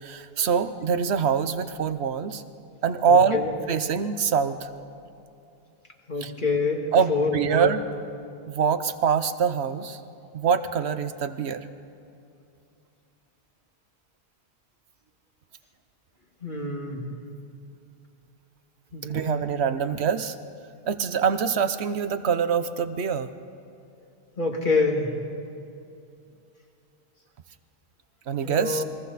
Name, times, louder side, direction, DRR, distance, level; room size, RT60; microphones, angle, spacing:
voice 1, 0.0-2.4 2.8-3.4 3.7-4.7 6.2-6.3 6.9-7.8 8.5-10.0 10.3-11.7 19.1-20.4 20.9-23.3 28.3-28.8, right 6 dB, 75° right, 11 dB, 1.1 m, -24 dB
voice 2, 3.1-3.5 6.1-7.7 16.4-17.1 18.9-19.5 24.4-25.1 28.4-28.8, left 3 dB, 50° left, 1 dB, 2.3 m, -26 dB
29.5 x 22.0 x 4.2 m, 2.6 s
omnidirectional pair, 1.1 m